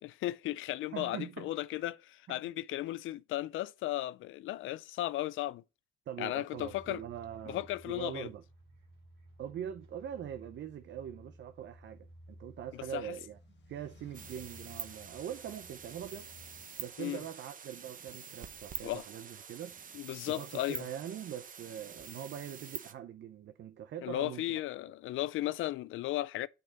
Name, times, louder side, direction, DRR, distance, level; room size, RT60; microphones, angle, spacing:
voice 1, 0.0-5.6 6.2-7.0 7.5-8.3 12.9-13.1 17.0-17.2 18.8-19.0 19.9-20.9 24.0-26.5, left 15 dB, 80° left, 0.4 m, -35 dB
voice 2, 0.9-1.9 2.3-2.4 6.1-8.4 9.4-13.4 13.7-16.3 16.8-19.8 20.3-24.6, right 10 dB, 65° right, 0.7 m, -43 dB
sound 1, 6.6-16.6, right 1 dB, 80° right, 2.8 m, -56 dB
sound 2, 11.9-17.3, left 7 dB, 65° left, 1.5 m, -64 dB
sound 3, 14.1-22.9, right 6 dB, 45° right, 1.0 m, -46 dB
6.5 x 5.3 x 5.8 m
cardioid pair, 90°, 20 cm